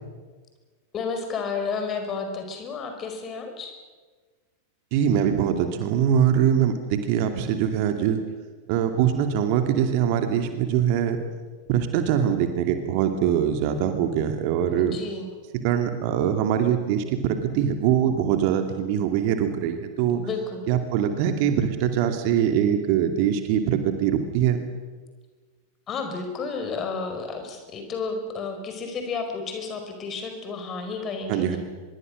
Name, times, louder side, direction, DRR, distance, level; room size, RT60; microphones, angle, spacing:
voice 1, 0.9-3.7 14.7-15.3 20.1-20.6 25.9-31.4, left 4 dB, 30° left, 5 dB, 5.1 m, -31 dB
voice 2, 4.9-8.2 8.7-11.2 11.7-15.0 15.6-20.2 20.7-24.6 31.3-31.6, right 9 dB, 45° right, 6 dB, 2.5 m, -23 dB
24.5 x 22.5 x 6.6 m, 1.4 s
figure-of-eight pair, 90°, 0 cm